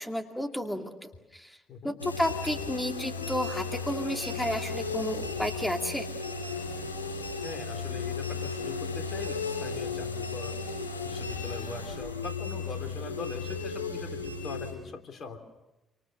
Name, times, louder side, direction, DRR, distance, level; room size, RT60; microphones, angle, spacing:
voice 1, 0.0-1.6 1.8-6.1, equal, 5° left, 4 dB, 2.5 m, -32 dB
sound 1, 2.0-14.7, left 4 dB, 90° left, 4.8 m, -35 dB
voice 2, 7.4-10.6 11.0-15.4, left 4 dB, 50° left, 7 dB, 3.4 m, -41 dB
28.0 x 26.0 x 6.7 m, 1.0 s
figure-of-eight pair, 45°, 0 cm